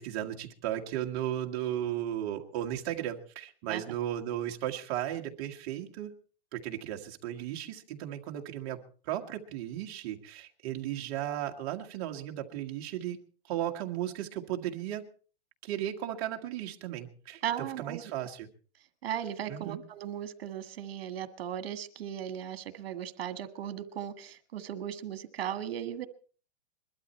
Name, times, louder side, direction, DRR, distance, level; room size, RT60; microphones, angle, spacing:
voice 1, 0.0-6.1 6.5-13.2 13.4-15.0 15.6-18.5 19.5-19.8, right 12 dB, 35° right, 3 dB, 1.6 m, -35 dB
voice 2, 17.4-18.1 19.0-26.1, right 10 dB, 65° right, 11 dB, 1.7 m, -37 dB
21.5 x 12.5 x 4.3 m, 0.40 s
hypercardioid pair, 155°, 31 cm